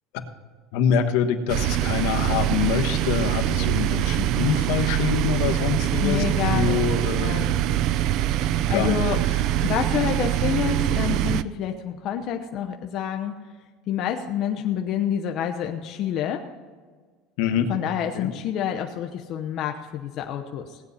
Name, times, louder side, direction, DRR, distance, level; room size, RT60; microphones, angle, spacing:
voice 1, 0.7-7.8 8.7-9.0 17.4-17.7 18.1-18.3, left 8 dB, 70° left, 6 dB, 1.2 m, -25 dB
sound 1, 1.5-11.4, right 12 dB, 50° right, 0.4 m, -24 dB
voice 2, 6.0-6.8 7.2-7.5 8.7-9.2 9.6-13.4 13.9-16.4 17.7-20.8, left 9 dB, 45° left, 3 dB, 0.8 m, -28 dB
17.5 x 9.5 x 4.2 m, 1.5 s
cardioid pair, 150°, 0 cm